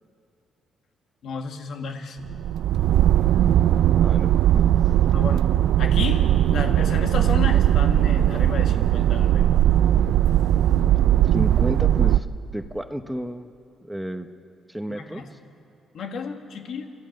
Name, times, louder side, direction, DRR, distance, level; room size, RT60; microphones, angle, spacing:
voice 1, 1.2-2.2 5.1-5.4 5.8-9.5 14.9-15.3 15.9-16.9, left 5 dB, 70° left, 5 dB, 1.8 m, -32 dB
sound 1, 2.2-12.2, right 11 dB, 85° right, 0.5 m, -19 dB
voice 2, 4.0-4.6 11.2-12.3 12.5-13.5 13.8-14.3 14.7-15.4, equal, ahead, 8 dB, 0.9 m, -31 dB
29.0 x 14.0 x 6.6 m, 2.6 s
cardioid pair, 95°, 0 cm